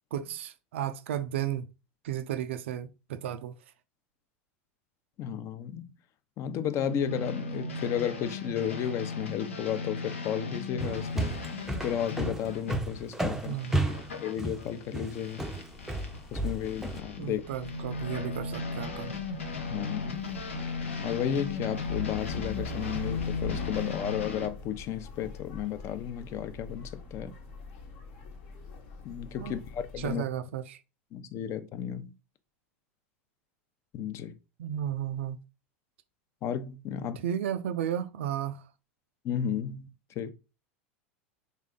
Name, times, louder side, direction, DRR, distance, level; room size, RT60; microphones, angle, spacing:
voice 1, 0.1-1.7 2.0-3.6 13.3-13.9 17.2-19.1 29.4-29.6 30.0-30.8 34.6-35.4 37.2-38.7, right 10 dB, 75° right, 0.4 m, -34 dB
voice 2, 5.2-5.9 6.4-11.3 11.8-13.5 14.2-15.5 16.3-17.4 19.7-20.2 21.0-27.3 29.0-30.2 31.1-32.1 33.9-34.3 36.4-37.2 39.2-39.9 40.2-40.3, left 9 dB, 45° left, 0.6 m, -33 dB
sound 1, 6.8-16.2 16.6-24.5, left 3 dB, 90° left, 0.7 m, -37 dB
sound 2, 10.8-17.0, right 1 dB, 5° right, 0.5 m, -32 dB
sound 3, 15.7-30.1, left 4 dB, 60° left, 1.0 m, -43 dB
3.3 x 2.3 x 3.7 m
hypercardioid pair, 95°, 7 cm